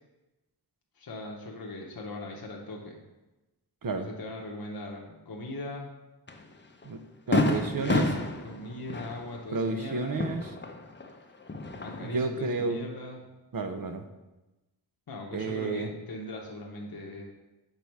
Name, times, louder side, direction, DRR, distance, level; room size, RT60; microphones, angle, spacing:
voice 1, 1.0-3.0 4.0-5.9 7.8-10.2 11.8-13.2 15.1-17.3, left 2 dB, 60° left, -1 dB, 1.0 m, -40 dB
Fireworks, 6.3-6.4 6.8-6.9 7.3-11.1 11.4-12.3, left 2 dB, 25° left, 0.6 m, -30 dB
voice 2, 7.3-8.1 9.5-10.5 12.0-12.8 13.5-14.1 15.3-15.9, right 3 dB, 55° right, 7 dB, 0.7 m, -31 dB
6.8 x 4.1 x 4.6 m, 1.1 s
wide cardioid pair, 65°, 41 cm